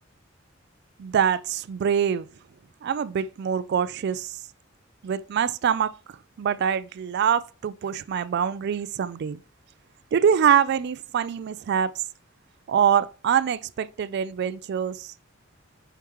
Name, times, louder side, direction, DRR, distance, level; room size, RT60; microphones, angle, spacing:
voice 1, 1.0-2.3 2.8-4.3 5.0-5.9 6.4-9.4 10.1-11.9 12.7-15.1, right 8 dB, 55° right, 0.3 m, -24 dB
7.1 x 4.6 x 3.0 m
head